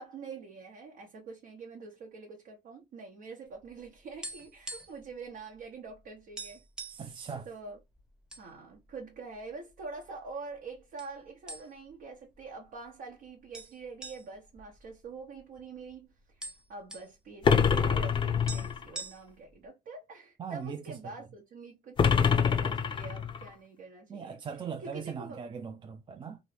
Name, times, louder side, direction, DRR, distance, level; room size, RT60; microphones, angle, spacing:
voice 1, 0.0-6.6 7.5-7.8 8.4-16.4 16.7-24.4 24.8-25.4, right 4 dB, 65° right, 0.9 m, -45 dB
sound 1, 3.7-5.1 5.4-5.6 5.9-6.0 6.4-7.1 7.8-8.5 8.8-9.0 9.7-10.3 11.0-11.1 11.5-12.0 12.4-12.5 13.5-15.6 15.9-16.0 16.2-17.1 18.1-18.2 18.5-19.5, right 2 dB, 5° right, 0.7 m, -43 dB
voice 2, 6.9-7.5 20.4-20.8 24.1-26.4, right 6 dB, 30° right, 0.4 m, -39 dB
sound 2, 17.4-18.9 22.0-23.5, left 6 dB, 30° left, 0.5 m, -25 dB
3.0 x 2.5 x 3.2 m
cardioid pair, 110°, 17 cm